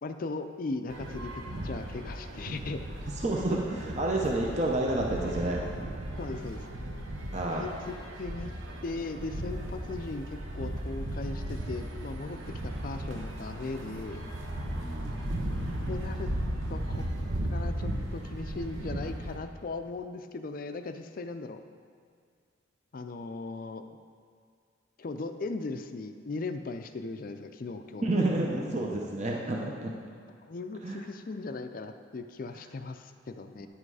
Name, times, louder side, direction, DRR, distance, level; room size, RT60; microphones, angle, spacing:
voice 1, 0.0-2.8 6.2-6.7 7.5-8.5 8.8-14.2 15.9-16.3 16.7-17.0 17.5-21.6 22.9-24.0 25.0-28.2 30.5-33.7, left 3 dB, 45° left, 8 dB, 0.4 m, -38 dB
sound 1, 0.9-19.4, right 1 dB, 85° right, 1.1 m, -36 dB
voice 2, 3.2-5.6 7.3-7.6 12.3-12.4 14.8-15.2 28.0-29.9 30.8-31.0, right 2 dB, 35° right, -1 dB, 0.8 m, -29 dB
10.0 x 7.6 x 4.8 m, 2.1 s
head